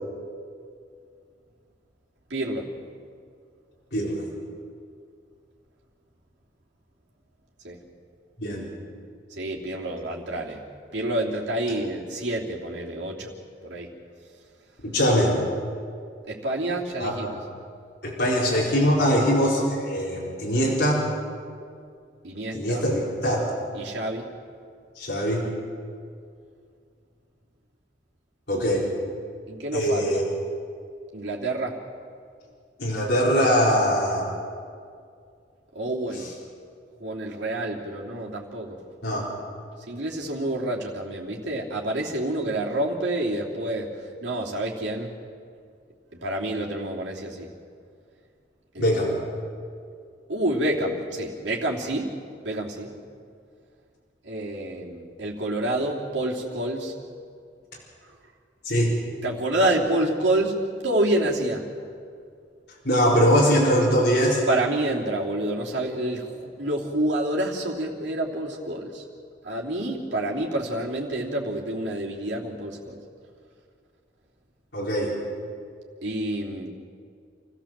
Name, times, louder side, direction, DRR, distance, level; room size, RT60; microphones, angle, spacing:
voice 1, 2.3-2.7 7.6-7.8 9.4-10.6 10.9-13.3 13.6-13.9 16.3-17.4 19.1-19.3 22.2-22.8 23.7-24.2 29.5-30.2 31.1-31.8 35.7-36.3 37.0-38.8 39.9-43.9 44.2-45.1 46.2-47.5 48.7-49.2 50.3-52.1 52.4-52.9 54.2-56.9 59.2-61.7 64.5-69.0 69.4-73.0 76.0-76.7, right 1 dB, 80° right, -3 dB, 3.1 m, -28 dB
voice 2, 3.9-4.2 8.4-8.7 14.8-15.4 17.0-17.1 18.0-21.1 22.5-23.5 25.0-25.5 28.5-28.9 29.7-30.2 32.8-34.3 36.1-36.3 39.0-39.3 48.8-49.1 58.6-59.0 62.8-64.4 74.7-75.1, equal, 65° left, -5 dB, 4.3 m, -22 dB
28.0 x 15.0 x 7.5 m, 2.3 s
head